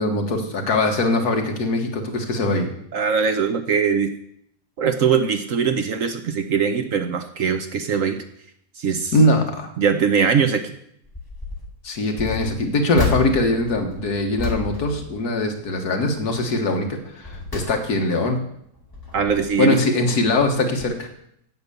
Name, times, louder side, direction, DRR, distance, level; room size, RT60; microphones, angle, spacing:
voice 1, 0.0-2.7 9.1-9.7 11.8-18.4 19.6-21.1, left 2 dB, 65° left, 4 dB, 1.9 m, -21 dB
voice 2, 2.9-4.1 4.8-8.2 8.8-9.1 9.8-10.6 19.1-19.8, right 6 dB, 60° right, 7 dB, 1.0 m, -21 dB
sound 1, 11.0-11.7 12.1-15.8 16.2-16.5 17.0-18.3 18.8-19.7 20.4-20.5 20.8-20.9, left 4 dB, 10° left, 2.2 m, -31 dB
9.0 x 8.4 x 6.9 m, 0.73 s
omnidirectional pair, 1.8 m